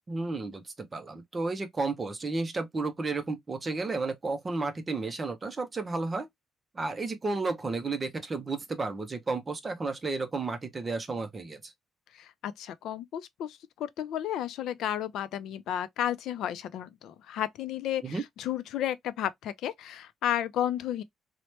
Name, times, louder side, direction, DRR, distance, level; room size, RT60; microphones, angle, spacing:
voice 1, 0.1-6.3 6.7-11.7 18.0-18.2, right 3 dB, 20° right, 0.5 m, -32 dB
voice 2, 12.1-21.0, left 11 dB, 75° left, 0.4 m, -33 dB
2.9 x 2.1 x 3.0 m
cardioid pair, 175°, 0 cm